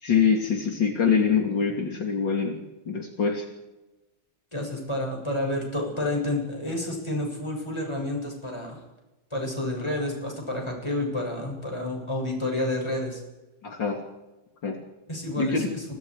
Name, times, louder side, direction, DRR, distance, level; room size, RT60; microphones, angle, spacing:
voice 1, 0.0-2.6 2.9-3.5 13.6-14.0 14.6-14.8 15.4-15.7, left 6 dB, 65° left, 2 dB, 3.5 m, -24 dB
voice 2, 4.5-8.8 9.3-13.2 15.1-15.8, left 1 dB, 15° left, 0 dB, 7.6 m, -30 dB
30.0 x 24.0 x 4.9 m, 1.0 s
omnidirectional pair, 2.1 m